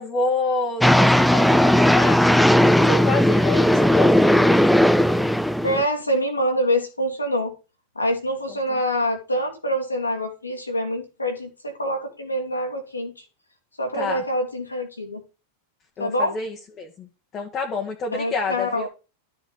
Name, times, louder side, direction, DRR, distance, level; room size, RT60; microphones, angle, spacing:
voice 1, 0.0-2.4 2.7-5.0 13.9-14.2 16.0-18.9, left 3 dB, 30° left, 1.5 m, -28 dB
sound 1, 0.8-5.8, left 1 dB, ahead, 0.4 m, -17 dB
voice 2, 5.6-7.5 8.0-13.2 13.8-15.2 16.0-16.3 18.1-18.9, equal, 80° left, 2.3 m, -25 dB
12.5 x 5.9 x 3.9 m
figure-of-eight pair, 90°, 0 cm